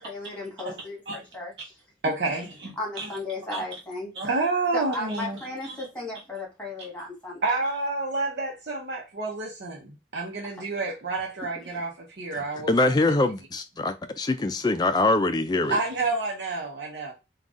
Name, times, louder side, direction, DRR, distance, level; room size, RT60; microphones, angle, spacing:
voice 1, 0.0-1.7 2.8-4.1 4.7-7.4, left 2 dB, 5° left, 1.5 m, -35 dB
voice 2, 2.0-3.1 3.5-3.6 4.1-5.4 5.7-5.9 7.4-12.7 15.7-17.1, right 3 dB, 75° right, 0.8 m, -29 dB
voice 3, 12.7-15.8, left 2 dB, 25° left, 0.3 m, -23 dB
3.8 x 2.4 x 3.6 m
head